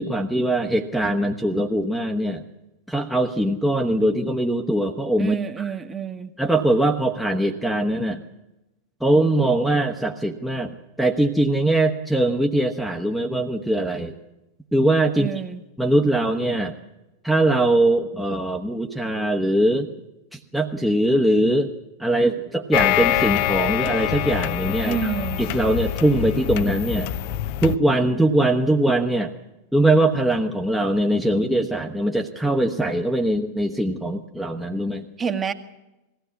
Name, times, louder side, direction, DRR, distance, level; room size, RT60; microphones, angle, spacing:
voice 1, 0.0-2.4 2.9-5.7 6.4-8.2 9.0-14.2 14.7-15.3 15.8-16.7 17.2-19.9 20.3-21.7 22.0-25.1 25.4-27.1 27.6-29.3 29.7-35.0, right 1 dB, ahead, 0 dB, 1.2 m, -21 dB
voice 2, 5.2-6.3 15.1-15.6 24.8-25.4 35.2-35.5, right 7 dB, 20° right, 7 dB, 1.5 m, -28 dB
sound 1, 22.7-27.8, left 14 dB, 45° left, 0.7 m, -25 dB
21.0 x 16.0 x 8.4 m, 0.98 s
figure-of-eight pair, 90°, 0 cm